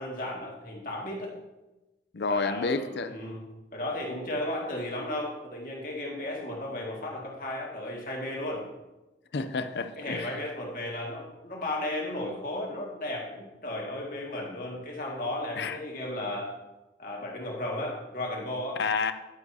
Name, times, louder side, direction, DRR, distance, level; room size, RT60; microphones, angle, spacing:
voice 1, 0.0-1.3 2.3-3.4 3.7-8.7 10.0-16.5 17.0-18.8, left 1 dB, 50° left, 2.0 m, -34 dB
voice 2, 2.1-3.1 9.3-10.3 15.6-15.8 18.8-19.1, left 4 dB, 75° left, 0.5 m, -29 dB
10.5 x 9.4 x 2.8 m
head